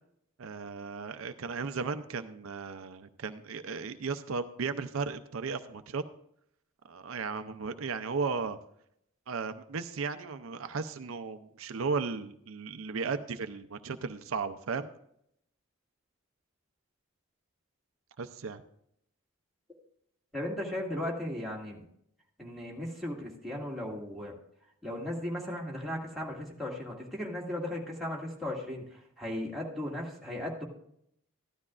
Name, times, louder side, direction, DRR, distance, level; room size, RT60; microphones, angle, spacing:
voice 1, 0.4-6.0 6.9-8.6 9.3-14.9 18.2-18.6, right 4 dB, 70° right, 9 dB, 0.5 m, -35 dB
voice 2, 20.3-21.8 22.4-24.3 24.8-30.6, left 1 dB, ahead, -4 dB, 2.0 m, -36 dB
14.0 x 12.0 x 2.4 m, 0.72 s
head